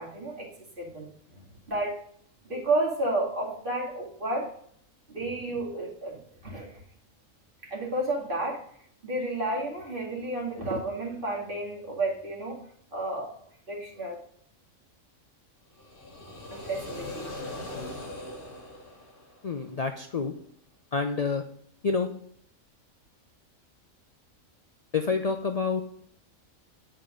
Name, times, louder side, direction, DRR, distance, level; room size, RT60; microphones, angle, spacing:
voice 1, 0.0-1.4 1.7-2.0 2.4-4.5 5.1-6.8 7.6-8.7 9.0-13.4 13.7-14.1 16.5-17.3, right 2 dB, 40° right, -3 dB, 2.4 m, -32 dB
sound 1, 15.7-19.7, left 1 dB, 40° left, 1.8 m, -40 dB
voice 2, 19.4-20.3 20.9-21.4 21.8-22.1 24.9-25.8, left 4 dB, 70° left, 6 dB, 0.3 m, -28 dB
8.6 x 4.5 x 5.1 m, 0.65 s
omnidirectional pair, 1.4 m